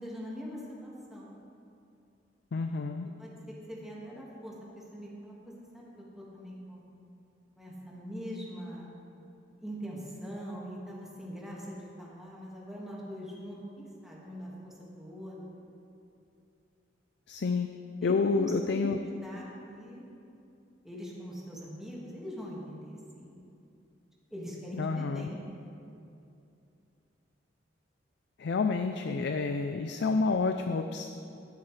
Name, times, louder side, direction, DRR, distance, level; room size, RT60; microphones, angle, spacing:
voice 1, 0.0-1.3 3.2-5.8 6.2-6.8 7.6-8.9 9.6-15.7 18.0-18.9 19.2-20.1 20.8-23.4 24.3-25.4, equal, ahead, -6 dB, 1.8 m, -42 dB
voice 2, 2.5-3.1 17.3-17.7 18.0-19.0 24.8-25.3 28.4-31.1, left 4 dB, 65° left, 6 dB, 0.4 m, -29 dB
12.0 x 12.0 x 3.3 m, 2.6 s
head